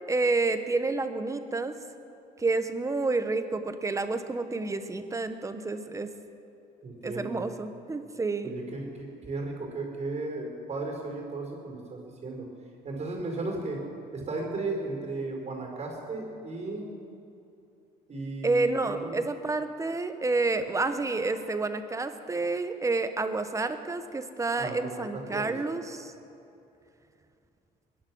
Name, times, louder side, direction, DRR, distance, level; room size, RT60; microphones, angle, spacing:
voice 1, 0.1-1.8 2.4-6.1 7.0-8.6 18.4-26.1, right 3 dB, 20° right, 9 dB, 1.0 m, -29 dB
voice 2, 6.8-7.4 8.4-12.5 12.8-13.8 14.1-16.9 18.1-19.2 24.6-25.5, right 3 dB, 40° right, 1 dB, 4.5 m, -35 dB
22.0 x 10.5 x 6.2 m, 2.7 s
cardioid pair, 110°, 17 cm